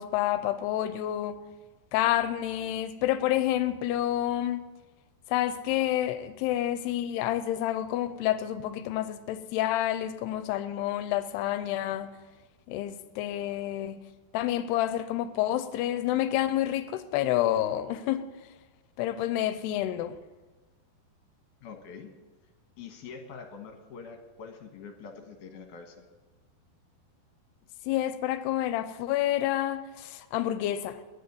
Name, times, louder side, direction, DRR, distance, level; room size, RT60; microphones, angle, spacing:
voice 1, 0.0-1.4 1.9-4.7 5.3-12.2 12.7-14.0 14.3-18.3 19.0-20.2 27.9-31.0, left 13 dB, 90° left, 12 dB, 2.7 m, -29 dB
voice 2, 21.6-22.1 22.8-26.1, left 5 dB, 60° left, 4 dB, 2.5 m, -45 dB
10.5 x 10.5 x 9.5 m, 1.2 s
omnidirectional pair, 4.7 m